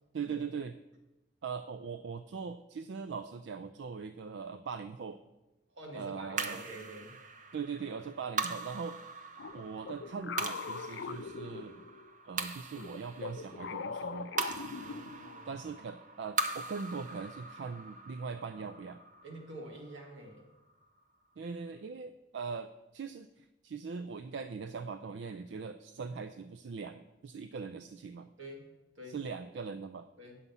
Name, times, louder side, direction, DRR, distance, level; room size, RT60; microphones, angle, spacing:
voice 1, 0.1-0.7 1.4-5.2 6.0-6.6 7.5-9.0 9.5-11.8 12.2-14.3 15.5-19.0 21.4-28.3 29.1-30.1, right 5 dB, 70° right, 11 dB, 0.4 m, -41 dB
voice 2, 5.7-7.2 14.8-15.6 19.2-20.5 28.4-28.7 28.9-29.2 30.2-30.4, right 1 dB, 90° right, 0 dB, 2.2 m, -47 dB
sound 1, 6.4-20.9, right 3 dB, 40° right, 0.7 m, -41 dB
sound 2, 9.4-12.1 12.7-15.4, left 5 dB, 70° left, 0.4 m, -42 dB
9.3 x 7.0 x 5.5 m, 1.0 s
head